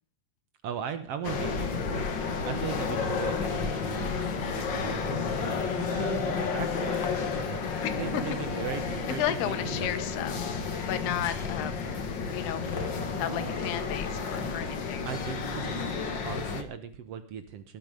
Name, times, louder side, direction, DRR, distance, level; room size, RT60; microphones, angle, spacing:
voice 1, 0.6-10.1 12.8-13.5 14.7-14.8 15.0-15.8 16.2-17.8, right 8 dB, 85° right, 10 dB, 1.3 m, -39 dB
sound 1, 1.2-16.6, left 5 dB, 50° left, 1.4 m, -31 dB
voice 2, 7.8-8.2 9.2-10.3 10.8-11.7 12.3-12.6 13.2-15.1, left 11 dB, 90° left, 10 dB, 3.4 m, -33 dB
18.5 x 11.5 x 5.2 m, 0.42 s
omnidirectional pair, 4.5 m